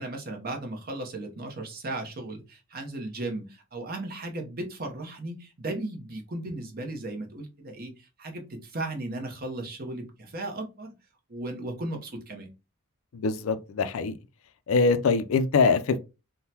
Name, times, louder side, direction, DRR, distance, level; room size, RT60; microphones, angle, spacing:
voice 1, 0.0-10.9 11.3-12.5, right 2 dB, 45° right, 0.8 m, -36 dB
voice 2, 13.1-14.1 14.7-16.0, left 4 dB, 75° left, 0.4 m, -23 dB
3.6 x 2.1 x 2.8 m
head